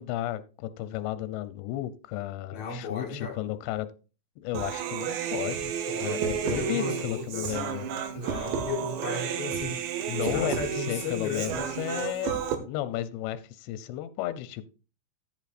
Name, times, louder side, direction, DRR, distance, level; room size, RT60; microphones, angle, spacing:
voice 1, 0.0-3.9 4.4-5.7 6.0-7.9 10.1-14.7, left 13 dB, 85° left, 3.0 m, -33 dB
voice 2, 2.5-3.4 5.9-7.6 8.1-9.8 10.2-11.7, left 4 dB, 50° left, 2.8 m, -35 dB
Human voice, 4.5-12.6, right 8 dB, 85° right, 3.5 m, -32 dB
14.0 x 8.2 x 2.5 m
omnidirectional pair, 4.9 m